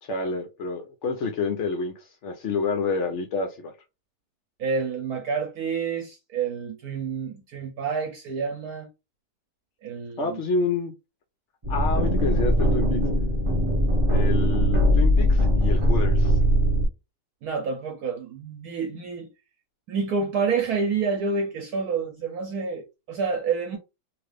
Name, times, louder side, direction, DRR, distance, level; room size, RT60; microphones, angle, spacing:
voice 1, 0.0-3.7 10.2-10.9 11.7-13.0 14.1-16.4, left 4 dB, 80° left, 0.6 m, -28 dB
voice 2, 4.6-8.9 9.8-10.4 17.4-19.3 19.9-23.8, right 5 dB, 70° right, 1.0 m, -28 dB
sound 1, 11.6-16.9, equal, 35° right, 0.5 m, -21 dB
3.0 x 2.4 x 3.2 m
omnidirectional pair, 1.9 m